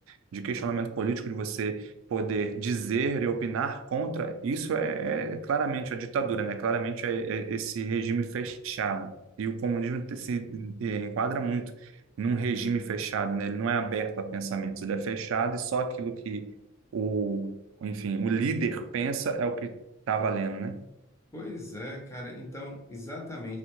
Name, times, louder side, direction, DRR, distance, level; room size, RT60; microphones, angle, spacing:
voice 1, 0.1-9.1 9.4-11.9 12.2-16.5 16.9-19.7 20.1-20.8, right 5 dB, 70° right, 8 dB, 0.3 m, -30 dB
voice 2, 21.3-23.6, left 1 dB, 15° left, 0 dB, 0.5 m, -39 dB
3.4 x 2.1 x 3.0 m, 0.92 s
head